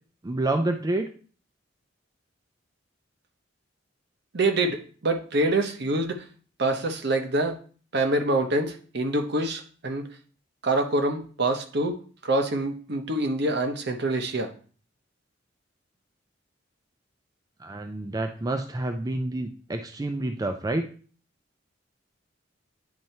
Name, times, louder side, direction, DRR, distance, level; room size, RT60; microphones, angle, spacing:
voice 1, 0.2-1.1 17.6-20.9, right 2 dB, 20° right, 6 dB, 0.4 m, -28 dB
voice 2, 4.3-6.2 6.6-7.6 7.9-10.1 10.6-14.5, right 2 dB, 60° right, 6 dB, 0.9 m, -26 dB
9.4 x 4.4 x 2.7 m, 0.41 s
head